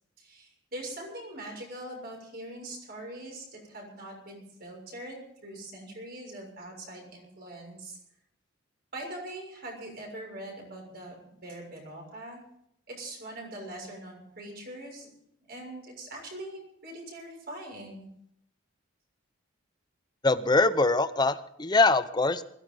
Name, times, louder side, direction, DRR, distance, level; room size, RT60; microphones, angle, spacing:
voice 1, 0.2-8.0 8.9-12.4 12.9-15.1 15.5-18.1, right 1 dB, 50° right, 0 dB, 6.7 m, -42 dB
voice 2, 20.2-22.4, left 3 dB, 20° left, 12 dB, 0.7 m, -23 dB
21.0 x 16.0 x 4.0 m, 0.74 s
head